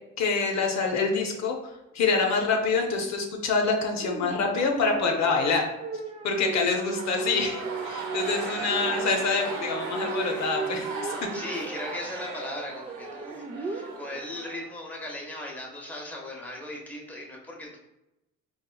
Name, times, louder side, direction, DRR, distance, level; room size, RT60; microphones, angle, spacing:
voice 1, 0.2-1.6 1.9-5.7 6.2-11.1, left 4 dB, 65° left, 2 dB, 0.6 m, -26 dB
sound 1, 4.0-14.5, right 4 dB, 20° right, 0.4 m, -36 dB
sound 2, 6.7-15.1, right 3 dB, 85° right, 0.6 m, -37 dB
voice 2, 8.4-8.7 11.1-17.8, left 1 dB, 5° left, -2 dB, 0.7 m, -38 dB
4.1 x 2.3 x 2.2 m, 0.92 s
cardioid pair, 90°, 30 cm